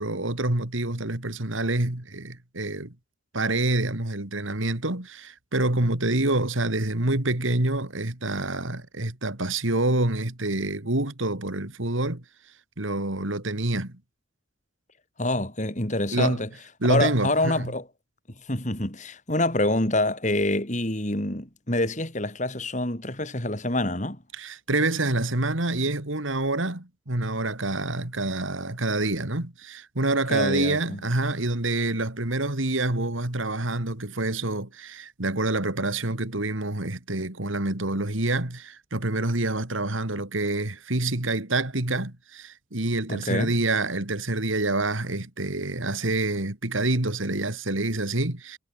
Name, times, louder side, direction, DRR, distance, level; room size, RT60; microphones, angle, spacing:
voice 1, 0.0-2.9 3.3-12.2 12.8-13.9 16.1-16.4 16.8-17.7 24.4-48.6, right 2 dB, 75° right, 2.9 m, -27 dB
voice 2, 15.2-16.5 16.9-17.8 18.5-24.2 30.3-31.0 43.1-43.5, left 1 dB, 35° left, 3.6 m, -26 dB
head